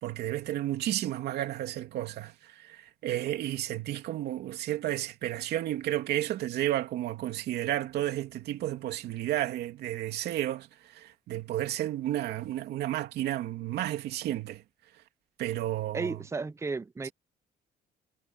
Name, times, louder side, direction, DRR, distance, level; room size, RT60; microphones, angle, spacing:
voice 1, 0.0-14.6 15.4-16.2, right 13 dB, 75° right, 3.0 m, -32 dB
voice 2, 15.9-17.1, right 4 dB, 15° right, 0.8 m, -33 dB
cardioid pair, 110°, 17 cm